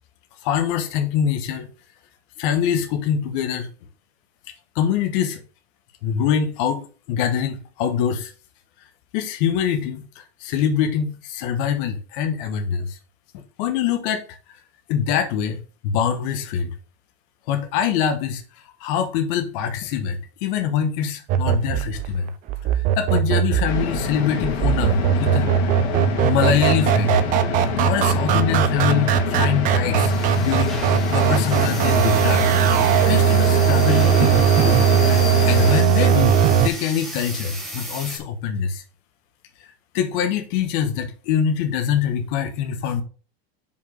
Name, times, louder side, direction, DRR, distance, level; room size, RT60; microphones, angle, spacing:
voice 1, 0.4-1.7 2.4-3.7 4.7-5.4 6.0-8.3 9.1-13.0 13.3-14.2 14.9-16.7 17.5-22.3 22.7-25.7 26.2-27.2 27.8-32.5 33.0-34.5 35.1-35.2 35.4-38.8 39.6-43.0, left 8 dB, 55° left, 1.2 m, -24 dB
sound 1, 21.3-36.7, right 8 dB, 25° right, 0.4 m, -19 dB
sound 2, 23.7-35.8, left 8 dB, 85° left, 1.9 m, -27 dB
sound 3, 30.0-38.2, equal, ahead, 1.7 m, -36 dB
5.4 x 4.6 x 6.2 m
supercardioid pair, 160°, 32 cm